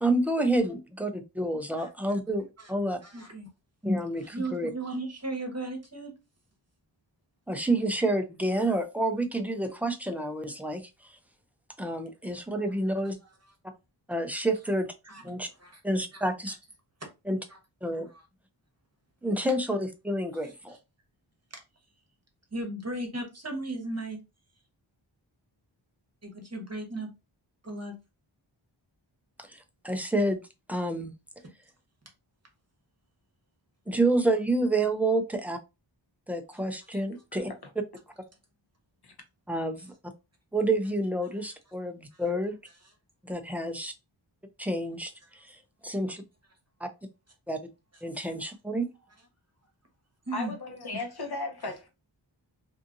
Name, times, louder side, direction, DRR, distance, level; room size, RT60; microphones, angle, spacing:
voice 1, 0.0-3.0 3.8-4.7 7.5-11.2 11.8-13.2 14.1-14.9 15.2-15.5 15.8-16.5 17.3-17.4 17.8-18.1 19.2-20.8 29.4-29.6 29.8-30.4 30.7-31.1 33.9-35.6 36.3-37.5 39.5-39.9 40.5-42.5 43.2-43.9 44.6-45.1 45.5-45.6 45.8-46.2 46.8-46.9 47.5-47.6 48.0-48.9, right 1 dB, 5° right, 0.4 m, -28 dB
voice 2, 3.0-3.5 4.2-6.1 15.0-15.8 16.1-16.5 17.5-17.6 18.1-18.2 20.7-20.8 21.5-21.6 22.5-24.2 26.2-27.1 27.6-27.9 42.1-42.2 50.3-50.5, right 2 dB, 30° right, 1.0 m, -36 dB
voice 3, 50.3-51.9, left 2 dB, 55° left, 0.9 m, -35 dB
2.7 x 2.4 x 2.5 m
wide cardioid pair, 65°, 48 cm